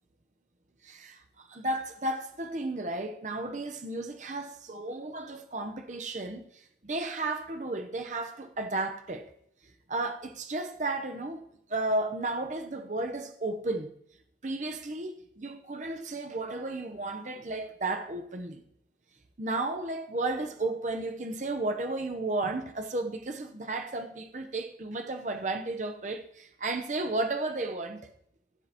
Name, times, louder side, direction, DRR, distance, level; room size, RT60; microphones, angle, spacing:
voice 1, 0.8-9.3 9.9-11.4 11.7-13.9 14.4-18.6 19.4-28.1, right 2 dB, 45° right, 0.8 m, -33 dB
16.0 x 7.4 x 2.9 m
head